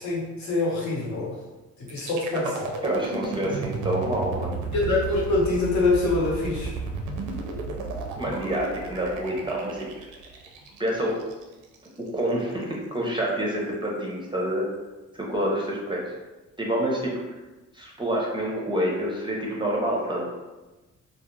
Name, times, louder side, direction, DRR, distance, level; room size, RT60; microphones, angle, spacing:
voice 1, 0.0-1.4 1.9-2.7 4.7-6.8, left 3 dB, 65° left, -5 dB, 0.9 m, -25 dB
sound 1, 1.9-11.9, right 4 dB, 85° right, 0.5 m, -34 dB
voice 2, 2.8-4.6 8.2-9.9 10.8-11.1 12.0-14.7 15.2-16.1 16.6-17.1 17.7-20.3, right 1 dB, 15° right, -3 dB, 0.5 m, -27 dB
2.3 x 2.1 x 3.0 m, 1.1 s
cardioid pair, 90°, 30 cm